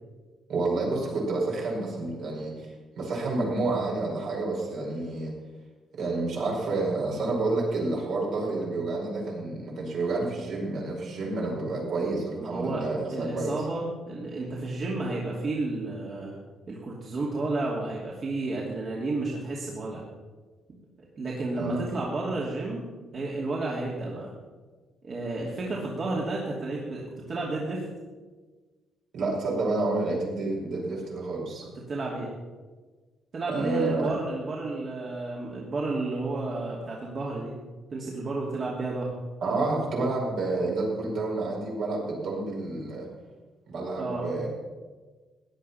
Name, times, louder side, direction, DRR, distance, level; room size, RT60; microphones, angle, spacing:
voice 1, 0.5-5.3 5.9-13.6 21.5-21.9 29.1-31.7 33.5-34.1 39.4-43.1 43.7-44.5, right 3 dB, 75° right, -3 dB, 5.4 m, -29 dB
voice 2, 12.4-12.8 13.1-16.4 16.7-20.0 21.2-22.8 23.1-24.3 25.0-27.8 31.8-32.3 33.3-37.6 37.9-39.1 44.0-44.3, right 2 dB, 45° right, -4 dB, 2.7 m, -31 dB
16.0 x 9.9 x 5.7 m, 1.4 s
cardioid pair, 90°, 0 cm